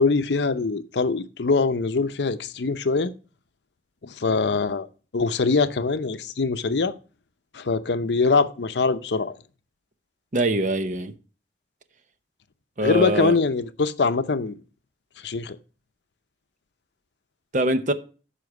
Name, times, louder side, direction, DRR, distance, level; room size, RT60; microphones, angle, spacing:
voice 1, 0.0-3.1 4.0-4.9 5.1-6.9 7.5-9.4 12.8-14.6 15.2-15.6, left 4 dB, 80° left, 0.6 m, -23 dB
voice 2, 10.3-11.1 12.8-13.4 17.5-17.9, right 1 dB, 45° right, 0.8 m, -23 dB
13.0 x 5.1 x 4.7 m
head